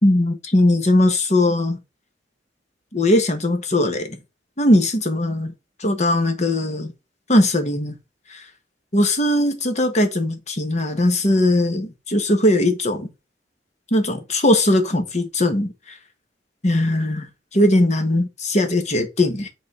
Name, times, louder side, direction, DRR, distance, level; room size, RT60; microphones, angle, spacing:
voice 1, 0.0-1.8 2.9-4.2 4.6-5.5 5.8-6.9 7.3-7.9 8.3-8.4 8.9-13.1 13.9-16.0 16.6-19.5, left 1 dB, 40° left, 1.3 m, -19 dB
6.9 x 3.8 x 4.9 m
head